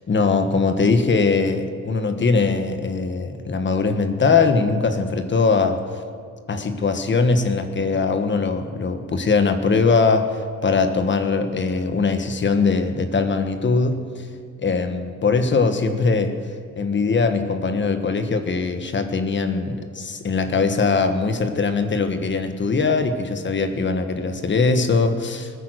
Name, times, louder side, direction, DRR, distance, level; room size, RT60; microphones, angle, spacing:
voice 1, 0.1-5.9 6.5-14.2 14.6-16.4 16.8-25.5, left 4 dB, 40° left, 8 dB, 1.5 m, -21 dB
20.0 x 9.6 x 6.4 m, 2.2 s
cardioid pair, 90°, 30 cm